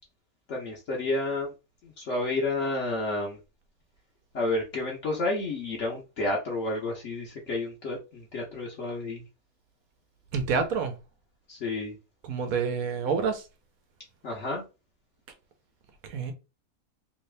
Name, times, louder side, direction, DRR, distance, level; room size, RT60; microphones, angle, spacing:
voice 1, 0.5-1.5 1.8-3.4 4.3-9.2 11.5-11.9 14.2-14.6, left 2 dB, 60° left, 1.2 m, -30 dB
voice 2, 10.3-10.9 12.2-13.4 16.1-16.3, right 5 dB, 80° right, 1.2 m, -28 dB
3.4 x 2.7 x 3.3 m
omnidirectional pair, 1.5 m